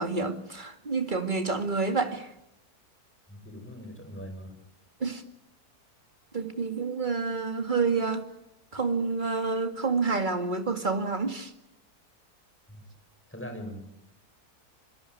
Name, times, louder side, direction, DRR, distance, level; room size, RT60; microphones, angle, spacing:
voice 1, 0.0-2.3 5.0-5.2 6.3-8.2 8.7-11.5, right 4 dB, 30° right, 2.3 m, -28 dB
voice 2, 3.3-4.6 12.7-12.8 13.3-13.8, equal, 5° left, 5.8 m, -41 dB
27.0 x 22.0 x 9.4 m
omnidirectional pair, 1.7 m